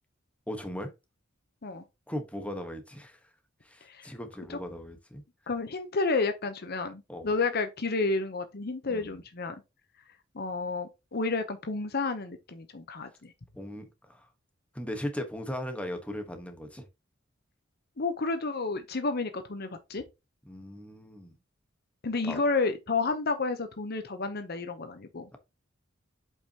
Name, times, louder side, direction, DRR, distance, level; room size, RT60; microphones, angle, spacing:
voice 1, 0.5-0.9 2.1-3.2 3.6-5.2 7.1-7.3 8.9-9.2 13.5-14.3 14.7-16.8 20.4-21.4 22.2-22.4, left 1 dB, 5° left, 1.3 m, -38 dB
voice 2, 3.8-4.1 4.5-4.6 5.5-9.6 10.3-13.3 18.0-20.0 22.0-25.3, left 3 dB, 55° left, 0.9 m, -31 dB
7.9 x 5.4 x 2.9 m
head